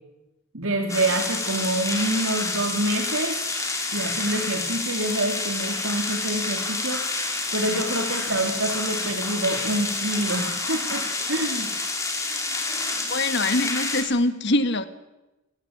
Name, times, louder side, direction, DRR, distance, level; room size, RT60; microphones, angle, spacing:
voice 1, 0.5-3.4 3.9-11.7, right 1 dB, 80° right, 3 dB, 2.9 m, -27 dB
sound 1, 0.9-14.0, left 3 dB, 15° left, 4.0 m, -28 dB
voice 2, 13.1-14.9, left 2 dB, 55° left, 11 dB, 1.7 m, -23 dB
29.0 x 17.5 x 8.8 m, 1.0 s
head